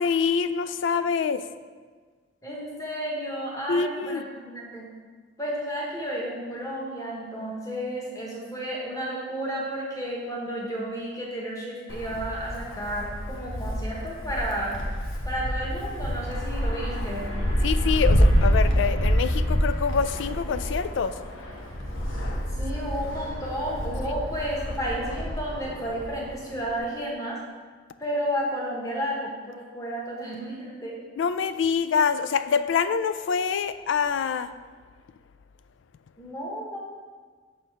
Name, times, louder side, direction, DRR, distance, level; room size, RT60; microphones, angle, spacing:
voice 1, 0.0-1.4 3.7-4.2 17.6-21.1 31.2-34.5, left 6 dB, 70° left, 12 dB, 0.3 m, -25 dB
voice 2, 2.4-4.9 5.4-14.7 15.2-17.3 22.6-27.4 28.0-30.9 36.2-36.8, equal, 20° left, -3 dB, 1.3 m, -32 dB
Wind, 11.9-26.8, equal, 85° left, 1.1 m, -27 dB
6.6 x 4.3 x 4.8 m, 1.5 s
head